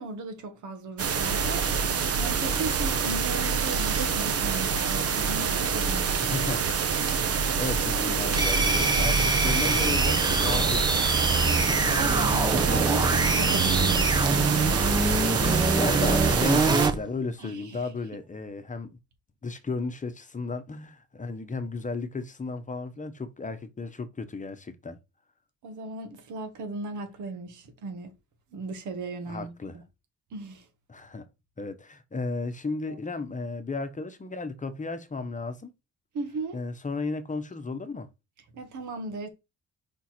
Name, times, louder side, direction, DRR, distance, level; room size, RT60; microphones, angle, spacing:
voice 1, 0.0-1.9 2.2-6.0 11.9-14.3 17.4-17.9 25.6-28.1 28.5-29.5 30.3-30.7 32.9-33.0 36.1-36.6 38.5-39.3, right 3 dB, 75° right, 1.8 m, -36 dB
sound 1, 1.0-16.9, right 6 dB, 50° right, 1.1 m, -26 dB
voice 2, 6.2-6.6 7.3-11.8 15.7-19.0 19.4-25.0 29.3-29.8 30.9-31.3 31.6-35.7 36.5-38.1, left 3 dB, 25° left, 1.1 m, -34 dB
sound 2, 8.4-17.0, right 3 dB, 15° right, 0.9 m, -25 dB
5.4 x 4.5 x 4.4 m
cardioid pair, 90°, 30 cm